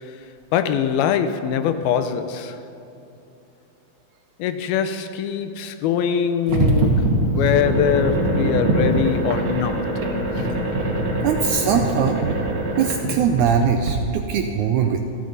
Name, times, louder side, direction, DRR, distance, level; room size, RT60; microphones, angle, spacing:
voice 1, 0.5-2.6 4.4-9.9 10.3-10.5, left 8 dB, 85° left, 2.6 m, -23 dB
sound 1, 6.5-13.9, right 2 dB, 50° right, 2.4 m, -23 dB
sound 2, 7.3-12.7, left 2 dB, 50° left, 2.0 m, -30 dB
voice 2, 11.2-12.2 12.7-15.0, right 7 dB, 85° right, 1.7 m, -21 dB
28.5 x 9.7 x 4.0 m
omnidirectional pair, 4.3 m